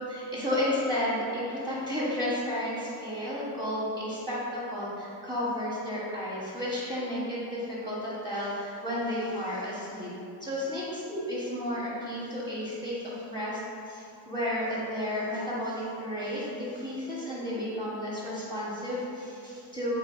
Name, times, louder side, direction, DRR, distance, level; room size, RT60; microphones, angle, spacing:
voice 1, 0.1-10.1 10.4-13.6 13.9-20.0, left 1 dB, 10° right, -9 dB, 1.3 m, -32 dB
3.4 x 2.6 x 4.6 m, 2.5 s
supercardioid pair, 55°, 45 cm